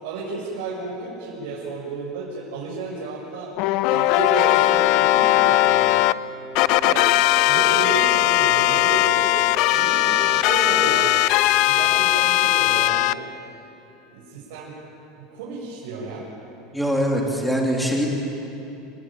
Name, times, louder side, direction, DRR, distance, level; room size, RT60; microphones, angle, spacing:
voice 1, 0.0-3.5 3.9-6.1 6.8-7.1 7.5-9.3 9.6-11.1 11.5-13.2 14.1-14.7 15.2-16.3, right 3 dB, 70° right, -5 dB, 7.0 m, -32 dB
sound 1, 3.6-6.1 6.6-13.1, left 16 dB, 45° left, 0.6 m, -19 dB
Wind instrument woodwind instrument, 4.5-11.8, right 1 dB, 20° right, 1.8 m, -39 dB
voice 2, 16.7-18.1, equal, ahead, -1 dB, 2.8 m, -22 dB
29.5 x 18.5 x 9.1 m, 2.9 s
supercardioid pair, 170°, 0 cm